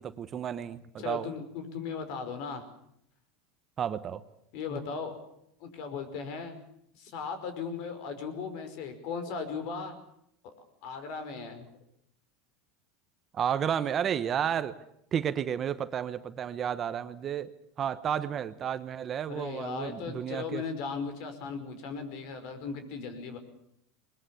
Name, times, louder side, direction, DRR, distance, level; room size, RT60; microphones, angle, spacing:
voice 1, 0.0-1.3 3.8-4.2 13.3-14.8 15.1-17.5 17.8-20.6, right 8 dB, 30° right, 12 dB, 1.1 m, -32 dB
voice 2, 1.0-2.6 4.5-5.1 5.6-6.6 7.0-9.9 10.8-11.6 19.3-23.4, left 5 dB, 60° left, 10 dB, 5.1 m, -37 dB
21.5 x 21.0 x 8.5 m, 0.74 s
supercardioid pair, 135°, 0 cm